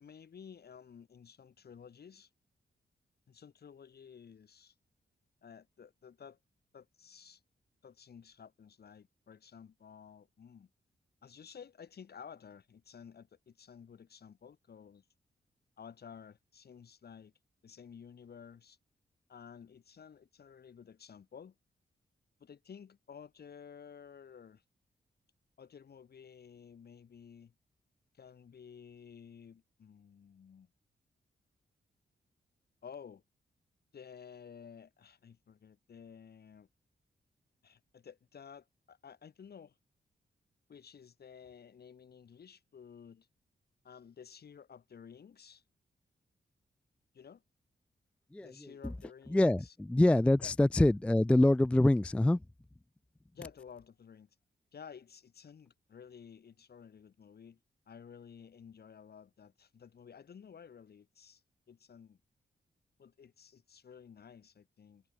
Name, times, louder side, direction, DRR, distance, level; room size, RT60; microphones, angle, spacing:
voice 1, 0.0-2.3 3.3-4.7 5.4-6.4 6.7-7.4 7.8-10.7 11.2-15.0 15.8-17.3 17.6-18.8 19.3-21.6 22.4-24.6 25.6-27.5 28.1-30.7 32.8-33.2 33.9-36.7 37.6-39.7 40.7-43.3 43.8-45.6 47.1-47.4 48.4-49.7 50.4-50.5 53.3-54.3 54.7-57.6 57.9-61.4 61.7-62.2 63.0-65.0, left 7 dB, 65° left, 6.4 m, -53 dB
voice 2, 48.3-48.7 49.3-52.4, left 1 dB, 5° left, 0.3 m, -25 dB
wide cardioid pair, 105°, 17 cm